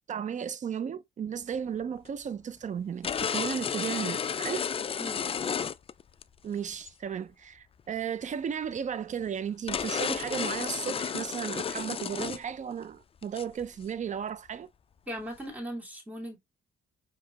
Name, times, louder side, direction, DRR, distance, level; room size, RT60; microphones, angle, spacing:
voice 1, 0.1-4.7 6.4-14.7, right 8 dB, 40° right, 0.5 m, -34 dB
sound 1, 2.0-2.1 3.0-6.2 6.7-6.9 8.8-8.9 9.2-9.3 9.7-12.5 12.7-12.8 13.2-13.9, left 7 dB, 30° left, 0.3 m, -32 dB
voice 2, 15.1-16.4, equal, 5° right, 2.3 m, -38 dB
5.1 x 3.0 x 2.7 m
cardioid pair, 90°, 20 cm